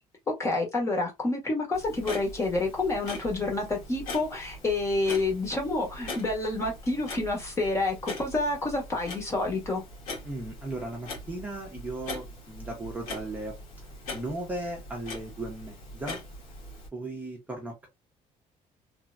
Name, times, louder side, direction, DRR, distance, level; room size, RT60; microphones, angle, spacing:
voice 1, 0.3-9.8, left 2 dB, 20° left, 1.1 m, -28 dB
Clock, 1.7-16.9, left 2 dB, 70° left, 1.5 m, -42 dB
voice 2, 10.2-13.5 14.1-16.2 16.9-17.9, right 1 dB, 10° right, 0.8 m, -36 dB
3.3 x 2.8 x 2.5 m
cardioid pair, 175°, 14 cm